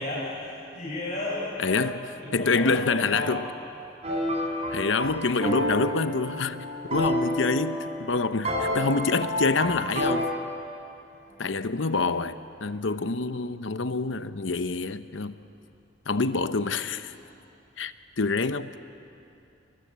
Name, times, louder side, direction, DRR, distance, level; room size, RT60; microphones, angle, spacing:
voice 1, 0.0-1.9 2.2-3.4 4.0-4.2 11.2-11.6 17.2-17.3, left 1 dB, 40° left, 7.4 m, -34 dB
voice 2, 1.6-2.0 2.3-3.5 4.7-6.6 6.8-10.3 11.4-15.3 16.1-17.1 17.8-18.7, left 4 dB, 80° left, 0.9 m, -26 dB
sound 1, 4.0-10.1, equal, 35° right, 7.2 m, -29 dB
28.5 x 23.0 x 8.2 m
head